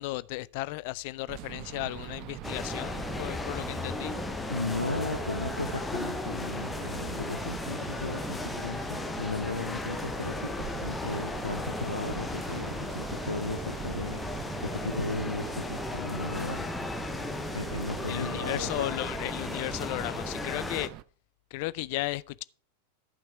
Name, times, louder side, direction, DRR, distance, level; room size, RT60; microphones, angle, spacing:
voice 1, 0.0-4.2 18.1-20.9 21.5-22.4, left 20 dB, 45° left, 0.3 m, -35 dB
sound 1, 1.3-21.0, right 15 dB, 40° right, 0.4 m, -43 dB
sound 2, 2.4-20.9, left 3 dB, 10° left, 0.8 m, -36 dB
voice 2, 4.5-16.7 17.5-19.0, left 2 dB, 80° left, 0.7 m, -36 dB
11.0 x 6.0 x 4.8 m
figure-of-eight pair, 90°, 0 cm